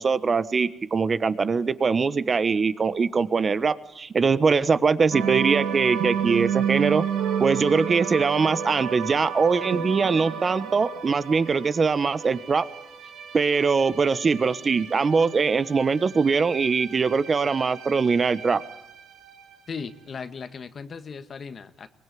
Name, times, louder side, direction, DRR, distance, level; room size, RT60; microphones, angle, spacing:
voice 1, 0.0-7.1 7.4-12.6 13.3-18.6, right 5 dB, 40° right, 14 dB, 1.2 m, -22 dB
sound 1, 5.1-19.6, right 8 dB, 80° right, 2.3 m, -32 dB
voice 2, 19.7-21.9, left 5 dB, 45° left, 9 dB, 1.4 m, -37 dB
24.0 x 20.0 x 9.4 m, 0.85 s
cardioid pair, 90°, 0 cm